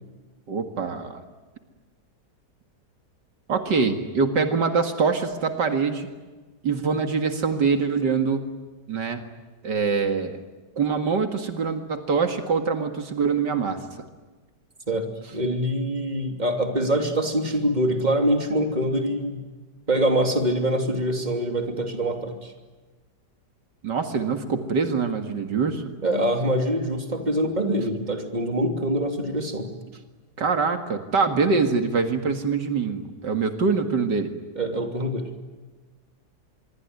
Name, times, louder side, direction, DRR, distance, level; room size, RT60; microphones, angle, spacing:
voice 1, 0.5-1.2 3.5-6.1 6.6-8.4 8.9-9.2 9.6-10.4 10.8-13.8 23.8-25.8 30.4-34.3, right 5 dB, 75° right, 7 dB, 2.5 m, -24 dB
voice 2, 14.9-19.4 19.9-22.5 26.0-29.7 34.6-35.3, right 1 dB, 25° right, 5 dB, 3.1 m, -24 dB
25.5 x 23.5 x 9.6 m, 1.3 s
omnidirectional pair, 1.9 m